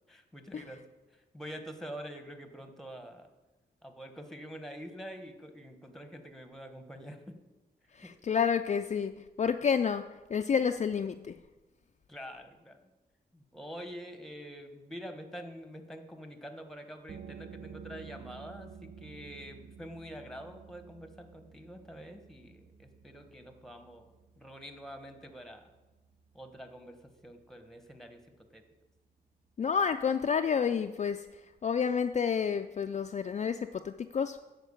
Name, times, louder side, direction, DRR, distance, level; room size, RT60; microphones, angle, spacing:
voice 1, 0.1-0.8 1.1-3.3 3.8-7.2 8.0-8.1 12.1-12.8 13.3-25.7 26.3-28.6, equal, ahead, 7 dB, 1.2 m, -46 dB
voice 2, 7.9-11.3 29.6-31.3 31.6-34.4, left 6 dB, 45° left, 7 dB, 0.4 m, -30 dB
sound 1, 17.1-28.5, right 7 dB, 55° right, 0.7 m, -52 dB
10.0 x 4.5 x 7.0 m, 1.1 s
cardioid pair, 80°, 17 cm